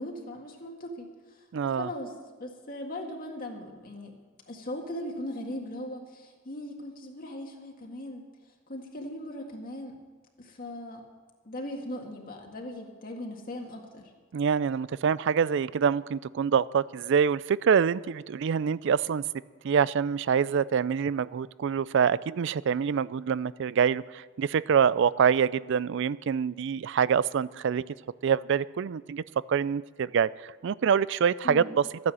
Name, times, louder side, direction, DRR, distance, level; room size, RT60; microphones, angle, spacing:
voice 1, 0.0-4.2 4.5-8.2 8.7-10.0 10.4-11.0 11.4-14.1 31.4-31.7, left 1 dB, 45° left, 1 dB, 1.8 m, -39 dB
voice 2, 1.5-1.9 14.3-19.2 19.6-27.8 28.2-29.2 29.5-30.3 30.6-31.8, right 7 dB, 65° right, 20 dB, 0.4 m, -25 dB
13.5 x 9.7 x 7.6 m, 1.5 s
head